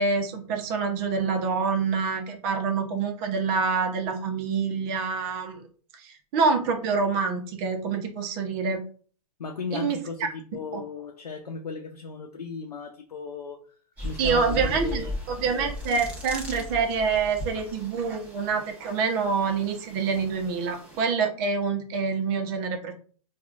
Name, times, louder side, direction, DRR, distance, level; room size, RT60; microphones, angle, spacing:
voice 1, 0.0-5.6 5.9-8.8 9.7-10.0 14.2-22.9, right 5 dB, 35° right, 4 dB, 0.8 m, -26 dB
voice 2, 9.4-13.6 14.0-15.2, left 4 dB, 85° left, 2 dB, 0.7 m, -36 dB
sound 1, 14.0-21.0, left 1 dB, 10° right, 1.2 m, -37 dB
4.3 x 2.4 x 2.4 m, 0.43 s
hypercardioid pair, 120°, 19 cm